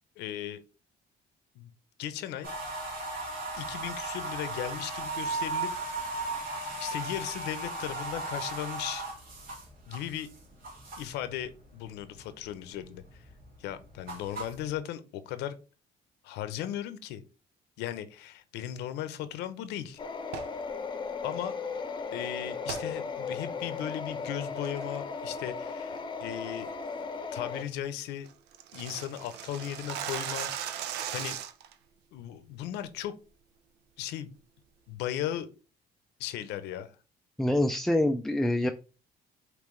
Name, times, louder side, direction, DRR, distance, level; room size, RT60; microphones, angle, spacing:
voice 1, 0.2-0.6 1.5-1.7 2.0-2.5 3.6-5.7 6.8-9.1 9.9-10.3 11.0-13.2 13.6-15.6 16.2-17.2 17.8-20.0 21.2-21.5 22.1-26.7 27.3-28.3 28.7-30.5 31.1-31.4 32.1-33.1 34.0-34.3 34.9-35.5 36.2-36.9, left 11 dB, 90° left, 12 dB, 0.7 m, -37 dB
sound 1, 2.4-11.3 11.7-12.3 12.7-14.7, right 3 dB, 60° right, 1.9 m, -36 dB
sound 2, 20.0-27.6, left 5 dB, 25° left, 0.8 m, -36 dB
sound 3, 20.2-20.6 22.7-22.9 23.4-23.5 24.0-24.2 24.6-25.0 25.3-25.6 25.9-26.0 26.4-26.7 27.0-27.1 27.4-27.5 27.7-27.8 28.1-31.7, right 9 dB, 90° right, 0.6 m, -37 dB
voice 2, 37.4-38.7, left 1 dB, ahead, 7 dB, 0.3 m, -25 dB
5.3 x 3.1 x 3.1 m, 0.33 s
cardioid pair, 110°, 17 cm